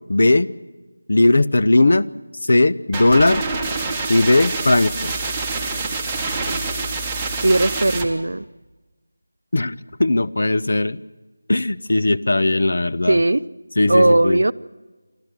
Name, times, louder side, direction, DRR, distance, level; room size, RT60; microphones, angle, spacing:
voice 1, 0.1-0.5 1.1-2.1 2.5-3.4 4.1-5.1 9.5-11.0 11.5-13.2 13.8-14.4, left 2 dB, 60° left, 14 dB, 0.7 m, -17 dB
sound 1, 2.9-8.1, right 3 dB, 5° right, 1.0 m, -26 dB
voice 2, 7.4-8.4 13.1-13.4 13.9-14.5, right 2 dB, 75° right, 16 dB, 0.6 m, -17 dB
27.0 x 13.5 x 7.7 m, 1.2 s
figure-of-eight pair, 175°, 0 cm